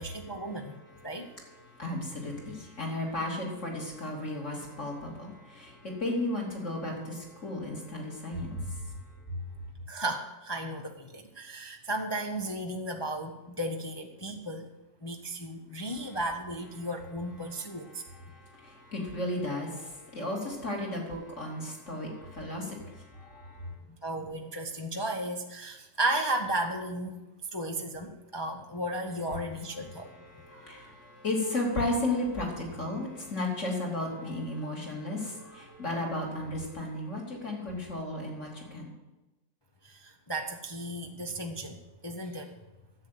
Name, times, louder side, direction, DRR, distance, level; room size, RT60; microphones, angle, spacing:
voice 1, 0.0-1.3 9.9-14.7 15.0-18.0 24.0-27.2 27.5-30.1 39.8-42.5, right 1 dB, 25° left, 3 dB, 0.6 m, -34 dB
voice 2, 0.9-9.4 17.7-23.7 29.8-38.9, left 1 dB, 45° left, -2 dB, 3.3 m, -35 dB
10.5 x 8.2 x 7.9 m, 1.1 s
omnidirectional pair, 1.8 m